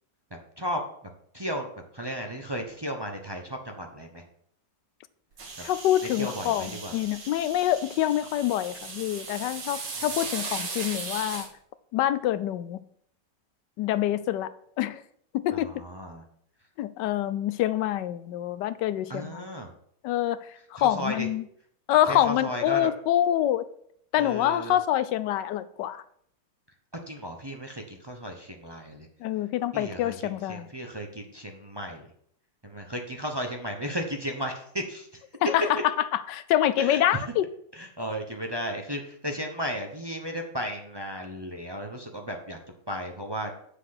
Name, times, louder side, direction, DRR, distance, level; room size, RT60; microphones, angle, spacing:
voice 1, 1.3-1.7 1.9-4.2 6.2-6.9 15.5-16.2 19.1-19.7 20.8-21.3 22.1-22.9 24.2-24.8 27.1-29.1 29.7-32.0 32.6-35.2 36.8-37.2 37.7-42.6 42.9-43.5, equal, 25° right, 0.5 m, -34 dB
sound 1, 5.4-11.5, right 4 dB, 75° right, 2.3 m, -37 dB
voice 2, 5.6-11.5 11.9-12.8 13.8-15.0 15.3-15.7 16.8-19.5 20.0-21.4 21.9-23.7 24.1-26.0 29.2-30.7 35.4-37.5, left 12 dB, 80° left, 1.2 m, -26 dB
7.5 x 6.7 x 5.8 m
omnidirectional pair, 1.9 m